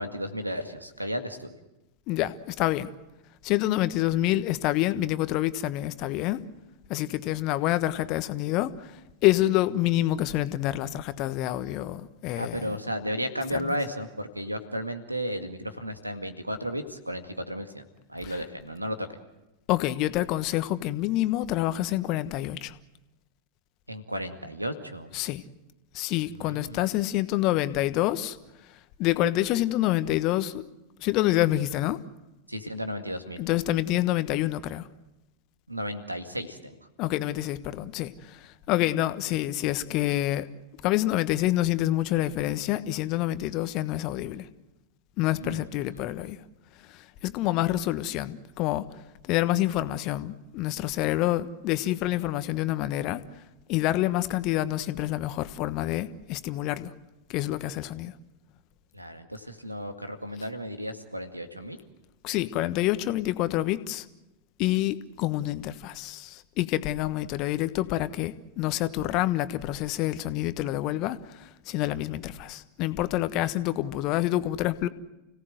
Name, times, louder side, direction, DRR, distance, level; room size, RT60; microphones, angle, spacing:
voice 1, 0.0-1.6 12.4-17.8 18.1-19.1 23.9-25.1 26.3-27.0 32.5-33.4 35.7-36.7 45.4-45.6 58.9-61.8, equal, 85° right, 8 dB, 2.0 m, -34 dB
voice 2, 2.1-2.9 3.4-6.4 6.9-8.9 9.2-12.7 19.7-22.8 25.1-25.4 25.9-28.4 29.0-30.6 31.0-32.0 33.4-34.8 37.0-40.5 40.8-44.5 45.2-46.4 46.9-48.9 49.3-53.2 53.7-56.9 57.3-58.1 62.2-64.1 64.6-74.9, left 15 dB, 40° left, 12 dB, 1.2 m, -27 dB
30.0 x 17.5 x 7.9 m, 0.99 s
figure-of-eight pair, 90°, 0 cm